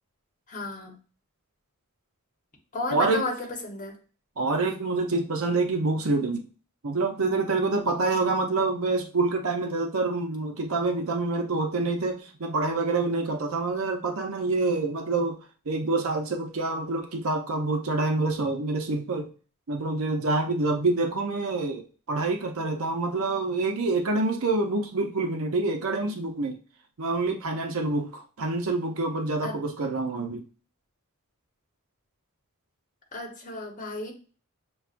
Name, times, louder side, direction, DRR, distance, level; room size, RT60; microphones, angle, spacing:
voice 1, 0.5-0.9 2.7-3.4 3.6-4.0 29.4-29.6 33.1-34.1, left 2 dB, 35° left, -1 dB, 1.0 m, -33 dB
voice 2, 2.9-3.2 4.4-6.5 6.8-15.4 15.7-19.3 19.7-26.6 27.0-30.4, right 3 dB, 70° right, 4 dB, 0.6 m, -27 dB
6.8 x 2.3 x 2.5 m, 0.38 s
head